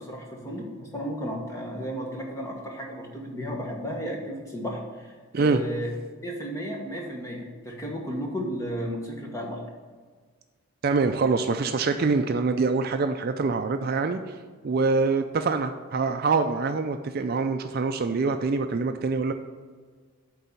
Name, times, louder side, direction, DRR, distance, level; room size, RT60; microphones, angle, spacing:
voice 1, 0.0-5.9 6.2-9.6, equal, 15° left, -1 dB, 1.3 m, -34 dB
voice 2, 10.8-14.2 14.6-19.3, right 4 dB, 45° right, 7 dB, 0.4 m, -25 dB
8.6 x 3.8 x 6.9 m, 1.5 s
head